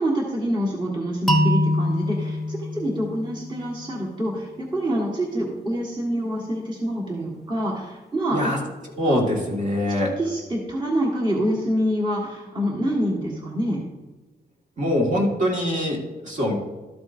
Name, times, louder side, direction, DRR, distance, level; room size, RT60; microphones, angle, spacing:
voice 1, 0.0-8.5 10.2-13.8, equal, 30° right, -4 dB, 1.6 m, -26 dB
sound 1, 1.3-4.2, left 1 dB, ahead, 1.0 m, -24 dB
voice 2, 9.0-10.2 14.8-16.6, equal, 50° right, -2 dB, 2.0 m, -23 dB
12.5 x 7.9 x 2.7 m, 1.2 s
wide cardioid pair, 130°, 17 cm